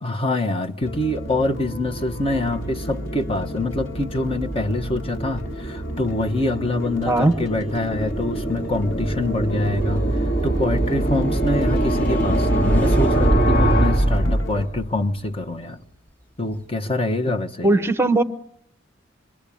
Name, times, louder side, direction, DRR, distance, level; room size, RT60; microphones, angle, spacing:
voice 1, 0.0-10.1 10.4-15.8 16.4-17.9, left 2 dB, 30° left, 1.3 m, -25 dB
sound 1, 0.8-14.7, equal, 75° left, 2.0 m, -34 dB
sound 2, 2.0-15.0, right 1 dB, 55° left, 3.4 m, -23 dB
voice 2, 7.0-7.4 17.6-18.2, right 2 dB, 15° right, 1.0 m, -18 dB
Car, 8.4-16.7, left 2 dB, 10° left, 2.1 m, -42 dB
26.5 x 23.0 x 8.6 m
head